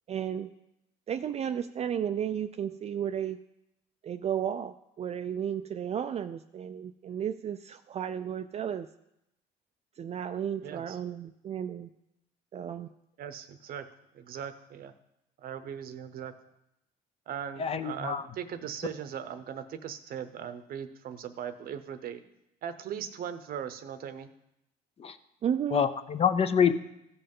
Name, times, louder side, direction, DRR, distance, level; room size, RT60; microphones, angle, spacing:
voice 1, 0.1-0.5 1.1-3.4 4.0-8.9 10.0-11.9 12.5-12.9 25.4-25.9, right 9 dB, 40° right, 8 dB, 0.4 m, -33 dB
voice 2, 10.6-11.0 13.2-13.9 14.1-14.9 15.4-16.3 17.3-22.2 22.6-24.3, right 8 dB, 60° right, 11 dB, 0.8 m, -39 dB
voice 3, 17.6-18.2 25.0-25.1 25.7-26.7, left 7 dB, 35° left, 11 dB, 0.6 m, -26 dB
15.0 x 5.5 x 5.4 m, 0.84 s
cardioid pair, 110°, 17 cm